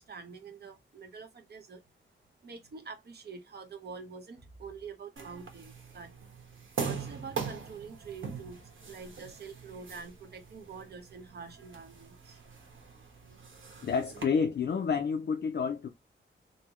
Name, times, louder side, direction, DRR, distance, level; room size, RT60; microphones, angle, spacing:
voice 1, 0.0-1.8 2.4-6.1 6.8-12.4, right 5 dB, 55° right, 0.9 m, -46 dB
sound 1, 5.2-14.2, right 5 dB, 75° right, 1.1 m, -42 dB
voice 2, 13.8-15.9, left 6 dB, 55° left, 0.4 m, -29 dB
3.9 x 2.1 x 2.9 m
wide cardioid pair, 175°, 20 cm